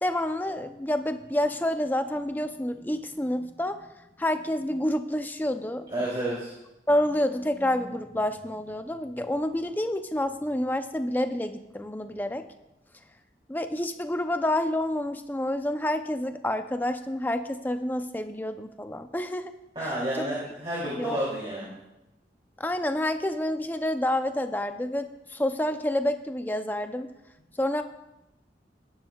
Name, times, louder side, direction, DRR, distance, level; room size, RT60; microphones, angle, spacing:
voice 1, 0.0-3.9 4.2-5.9 6.9-12.4 13.5-19.5 19.8-19.9 21.0-21.2 22.6-27.1 27.6-27.8, left 1 dB, 10° left, 8 dB, 0.5 m, -28 dB
voice 2, 5.9-6.5 19.7-21.7, right 1 dB, 30° right, -6 dB, 2.7 m, -30 dB
17.0 x 10.5 x 2.3 m, 0.93 s
head